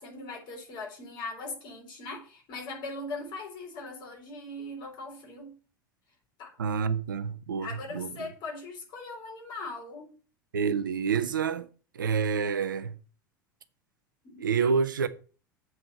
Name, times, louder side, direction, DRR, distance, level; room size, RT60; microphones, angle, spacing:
voice 1, 0.0-5.6 6.4-6.6 7.6-10.1 14.2-14.4, left 2 dB, 45° left, 3.9 m, -40 dB
voice 2, 6.6-8.3 10.5-11.7 11.9-13.0 14.4-15.1, right 6 dB, 75° right, 0.8 m, -28 dB
8.0 x 4.8 x 7.3 m
figure-of-eight pair, 80°, 11 cm